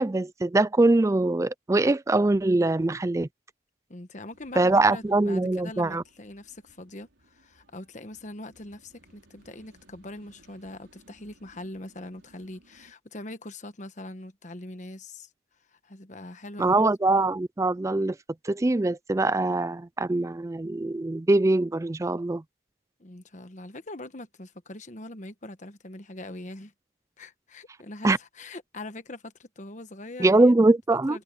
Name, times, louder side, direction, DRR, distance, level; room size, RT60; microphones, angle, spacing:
voice 1, 0.0-3.3 4.6-6.0 16.6-18.2 18.4-22.4 28.0-28.2 30.2-31.2, right 2 dB, 15° right, 0.3 m, -23 dB
voice 2, 3.9-15.3 15.7-16.8 23.0-26.7 27.2-30.5 30.9-31.2, left 2 dB, 40° left, 1.2 m, -42 dB
sound 1, 4.3-12.9, right 1 dB, 90° right, 4.3 m, -60 dB
head